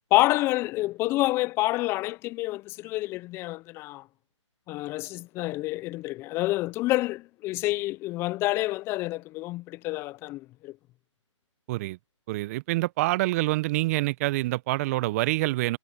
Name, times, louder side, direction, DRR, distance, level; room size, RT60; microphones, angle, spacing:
voice 1, 0.1-4.0 4.7-10.8, left 19 dB, 15° left, 0.6 m, -28 dB
voice 2, 12.3-15.8, right 19 dB, 30° right, 1.1 m, -26 dB
figure-of-eight pair, 140°, 16 cm